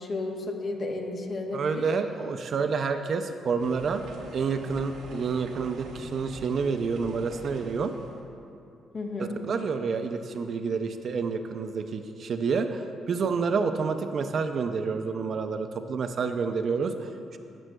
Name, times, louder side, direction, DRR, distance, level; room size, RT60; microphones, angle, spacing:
voice 1, 0.0-1.9 8.9-9.4, left 2 dB, 45° left, 2 dB, 0.9 m, -33 dB
voice 2, 1.5-4.0 4.3-7.9 9.2-17.4, right 5 dB, 55° right, 8 dB, 0.4 m, -29 dB
sound 1, 3.6-8.2, right 3 dB, 85° right, 0.8 m, -45 dB
13.5 x 6.0 x 2.2 m, 2.6 s
cardioid pair, 90°, 0 cm